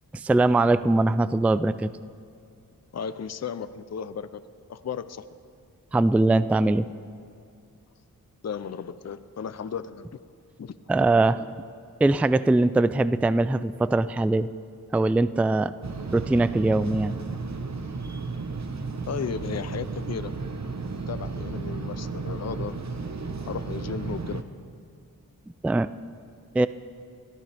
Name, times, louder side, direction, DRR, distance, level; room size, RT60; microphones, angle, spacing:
voice 1, 0.1-1.9 5.9-6.9 10.9-11.4 12.0-14.5 14.9-15.7 16.1-17.2 25.6-25.9 26.5-26.7, right 2 dB, 5° right, 15 dB, 0.3 m, -21 dB
voice 2, 2.9-4.4 4.7-5.2 8.4-10.1 10.6-10.8 19.1-20.4 21.1-22.8 23.4-24.4, left 7 dB, 45° left, 13 dB, 0.6 m, -34 dB
sound 1, 15.8-24.4, right 4 dB, 50° right, 1.0 m, -33 dB
21.5 x 13.5 x 3.5 m, 2.4 s
cardioid pair, 40°, 37 cm